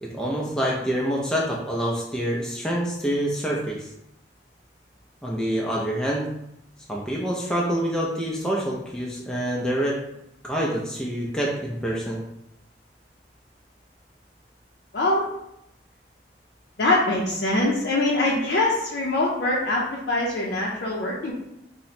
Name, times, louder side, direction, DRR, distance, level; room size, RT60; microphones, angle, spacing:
voice 1, 0.0-3.9 5.2-6.3 6.9-10.0 10.4-12.2, equal, 5° left, -4 dB, 0.4 m, -26 dB
voice 2, 16.8-21.3, left 2 dB, 65° left, -4 dB, 0.5 m, -23 dB
2.8 x 2.1 x 4.0 m, 0.81 s
head